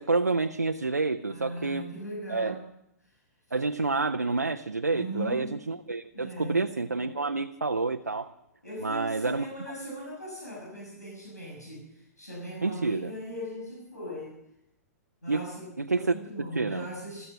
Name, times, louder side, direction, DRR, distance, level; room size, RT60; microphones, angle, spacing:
voice 1, 0.0-1.9 2.3-2.6 3.5-8.3 8.8-9.5 12.6-13.1 15.3-15.4 15.8-16.1 16.5-16.9, right 3 dB, 85° right, 7 dB, 0.6 m, -28 dB
voice 2, 1.2-2.6 3.0-3.1 4.9-5.5 6.1-6.6 8.6-14.4 15.2-17.2, equal, 85° left, -3 dB, 6.5 m, -39 dB
15.0 x 13.0 x 6.1 m, 0.80 s
figure-of-eight pair, 110°, 9 cm